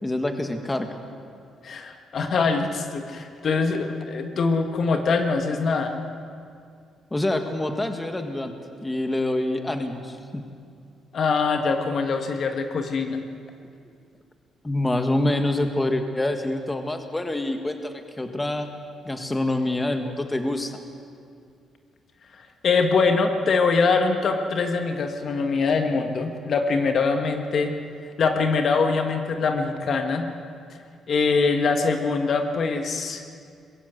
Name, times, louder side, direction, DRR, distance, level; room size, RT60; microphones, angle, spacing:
voice 1, 0.0-1.0 7.1-8.5 8.8-10.4 14.6-18.7 19.0-20.8, left 1 dB, 15° left, 6 dB, 1.8 m, -26 dB
voice 2, 1.6-6.0 11.1-13.2 22.6-27.7 28.2-30.3 31.1-33.2, left 4 dB, 55° left, 5 dB, 1.6 m, -23 dB
21.0 x 15.5 x 8.2 m, 2.3 s
cardioid pair, 90°, 0 cm